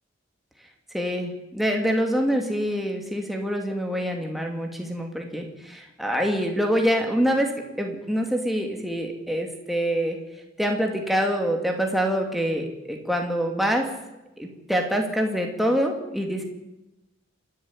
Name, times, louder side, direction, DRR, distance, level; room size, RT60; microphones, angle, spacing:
voice 1, 0.9-10.2 10.6-13.9 14.4-16.4, equal, ahead, 2 dB, 2.6 m, -25 dB
27.0 x 11.5 x 9.8 m, 0.97 s
head